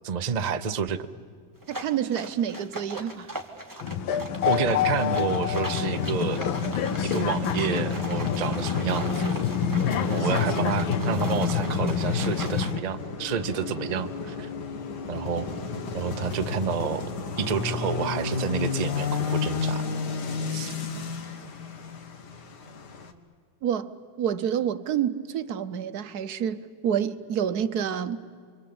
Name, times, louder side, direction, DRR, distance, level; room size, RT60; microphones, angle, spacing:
voice 1, 0.0-1.1 4.4-6.4 7.0-9.3 10.0-14.5 15.1-15.5 15.9-17.1 17.4-19.8 20.5-20.7, right 6 dB, 75° right, 0.3 m, -29 dB
sound 1, 1.6-12.7, right 1 dB, 10° right, 1.8 m, -39 dB
voice 2, 1.7-3.3 23.6-28.4, right 9 dB, 60° right, 1.2 m, -28 dB
sound 2, 3.8-12.8, left 8 dB, 80° left, 1.7 m, -27 dB
sound 3, 5.7-23.1, left 5 dB, 55° left, 2.0 m, -33 dB
28.5 x 24.5 x 8.7 m
omnidirectional pair, 2.2 m